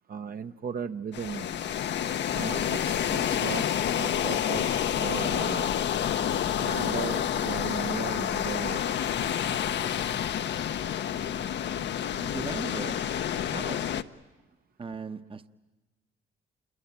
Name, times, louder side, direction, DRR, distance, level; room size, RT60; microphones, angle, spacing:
voice 1, 0.1-1.5 2.3-3.7 3.9-5.8 6.4-8.9, right 6 dB, 50° right, 1.0 m, -36 dB
sound 1, 1.1-14.0, left 9 dB, 65° left, 0.9 m, -29 dB
voice 2, 12.2-13.1 13.5-13.9 14.8-15.5, right 5 dB, 25° right, 1.0 m, -38 dB
28.0 x 22.5 x 9.0 m
cardioid pair, 90°, 20 cm